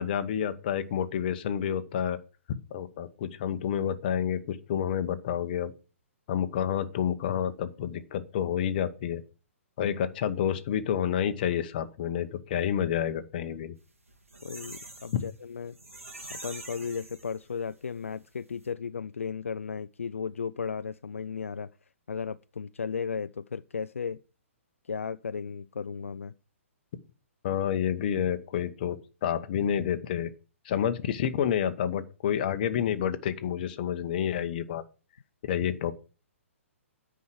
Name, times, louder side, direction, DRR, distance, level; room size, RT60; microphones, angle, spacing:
voice 1, 0.0-2.2 2.7-5.7 6.3-9.2 9.8-13.7 15.1-15.2 27.4-29.0 29.2-30.3 30.6-34.8 35.5-35.9, left 9 dB, 40° left, 1.0 m, -29 dB
sound 1, 13.9-17.8 18.2-18.3 18.5-18.7, right 2 dB, 75° right, 2.3 m, -45 dB
voice 2, 14.4-15.8 16.3-21.7 22.1-24.2 24.9-26.3, left 6 dB, 70° left, 0.4 m, -35 dB
9.6 x 4.8 x 7.7 m
figure-of-eight pair, 120°, 7 cm